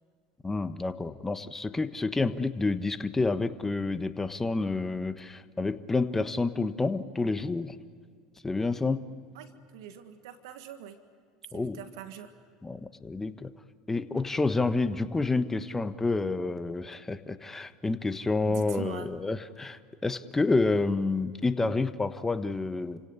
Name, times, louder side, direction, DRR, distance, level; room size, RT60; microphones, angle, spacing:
voice 1, 0.4-7.8 8.4-9.1 11.5-11.8 12.6-13.5 13.9-23.0, left 3 dB, 15° left, 11 dB, 1.4 m, -29 dB
voice 2, 9.3-11.0 11.5-12.3 18.5-19.1, right 9 dB, 75° right, 9 dB, 1.7 m, -43 dB
29.5 x 17.5 x 9.7 m, 2.2 s
hypercardioid pair, 90°, 3 cm